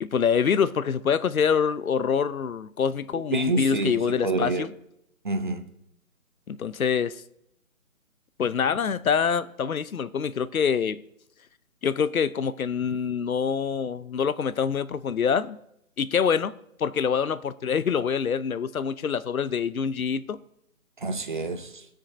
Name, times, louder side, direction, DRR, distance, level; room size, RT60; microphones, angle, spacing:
voice 1, 0.0-4.7 6.5-7.2 8.4-11.0 11.8-15.6 16.0-16.5 16.8-20.4, left 7 dB, 75° left, 0.8 m, -25 dB
voice 2, 3.3-4.7 5.2-5.6 21.0-21.7, right 3 dB, 35° right, 0.8 m, -27 dB
19.0 x 6.5 x 4.2 m
hypercardioid pair, 170°, 42 cm